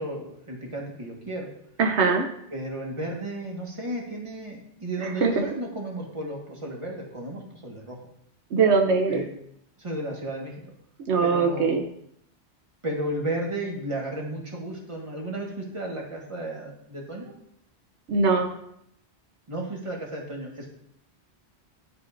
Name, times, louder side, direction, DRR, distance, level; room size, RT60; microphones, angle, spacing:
voice 1, 0.0-1.5 2.5-8.0 9.1-9.3 9.8-10.5 11.2-11.8 12.8-17.3 19.5-20.7, right 1 dB, 30° right, -2 dB, 1.5 m, -33 dB
voice 2, 1.8-2.3 5.0-5.3 8.5-9.2 11.1-11.8 18.1-18.6, right 4 dB, 80° right, 4 dB, 1.0 m, -22 dB
11.0 x 4.9 x 2.5 m, 0.73 s
omnidirectional pair, 1.1 m